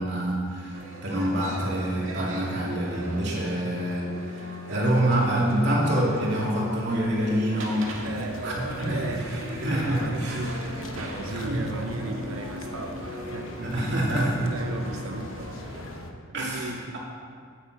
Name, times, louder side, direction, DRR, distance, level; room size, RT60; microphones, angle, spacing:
voice 1, 0.0-7.9 8.4-10.4 11.3-11.7 13.6-14.4 16.3-17.0, right 1 dB, 55° right, -4 dB, 2.6 m, -26 dB
sound 1, 0.7-16.0, right 1 dB, 75° right, 1.7 m, -38 dB
sound 2, 7.9-16.1, left 2 dB, 75° left, 1.0 m, -41 dB
voice 2, 8.0-8.4 8.9-9.7 10.0-10.6 11.0-13.6 14.1-15.6 16.3-17.0, right 2 dB, 90° right, 3 dB, 0.8 m, -37 dB
9.2 x 6.7 x 7.9 m, 2.1 s
head